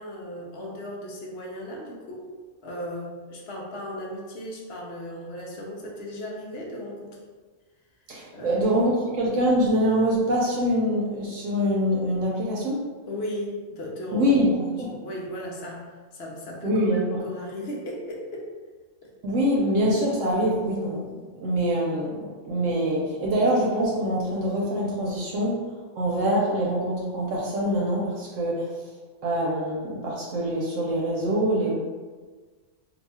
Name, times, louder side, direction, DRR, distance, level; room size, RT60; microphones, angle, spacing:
voice 1, 0.0-2.3 2.6-7.2 8.3-8.6 13.1-14.3 14.8-18.5 19.0-19.1, equal, 60° left, -2 dB, 0.8 m, -36 dB
voice 2, 8.1-12.8 14.1-14.5 14.8-15.0 16.6-17.2 19.2-25.6 26.0-28.7 29.2-31.7, equal, 70° right, -4 dB, 1.0 m, -24 dB
2.6 x 2.3 x 4.1 m, 1.4 s
omnidirectional pair, 1.4 m